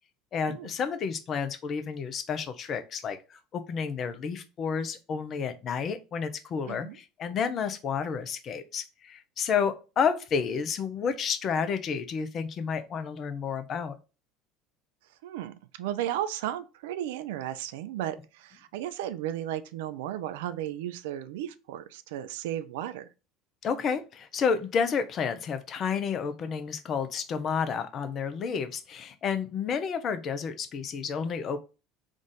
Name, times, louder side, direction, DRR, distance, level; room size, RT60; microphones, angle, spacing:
voice 1, 0.3-14.0 23.6-31.6, left 6 dB, 45° left, 0.6 m, -30 dB
voice 2, 6.7-7.0 15.2-23.1, right 12 dB, 70° right, 0.3 m, -34 dB
3.7 x 2.4 x 3.9 m
hypercardioid pair, 70°, 0 cm